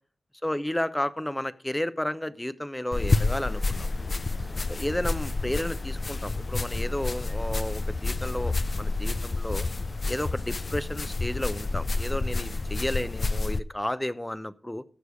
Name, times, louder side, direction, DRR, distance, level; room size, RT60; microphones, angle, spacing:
voice 1, 0.4-4.2 4.7-9.7 10.1-14.8, left 1 dB, 15° left, 0.8 m, -32 dB
sound 1, 2.9-13.6, left 3 dB, 50° left, 0.6 m, -29 dB
14.5 x 6.7 x 4.9 m
cardioid pair, 45°, 0 cm